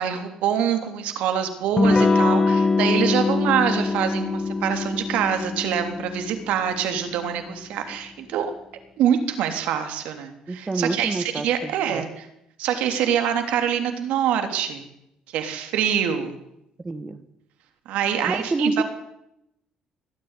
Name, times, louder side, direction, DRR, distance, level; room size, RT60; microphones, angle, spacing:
voice 1, 0.0-8.5 9.0-12.1 12.6-14.9 15.3-16.3 17.8-18.8, right 9 dB, 85° right, 7 dB, 3.3 m, -25 dB
Electric guitar / Strum, 1.8-7.1, left 3 dB, 20° left, 2.2 m, -23 dB
voice 2, 10.5-12.0 16.8-17.2 18.2-18.8, right 3 dB, 15° right, 10 dB, 1.4 m, -27 dB
20.5 x 13.5 x 9.9 m, 0.83 s
cardioid pair, 145°, 2 cm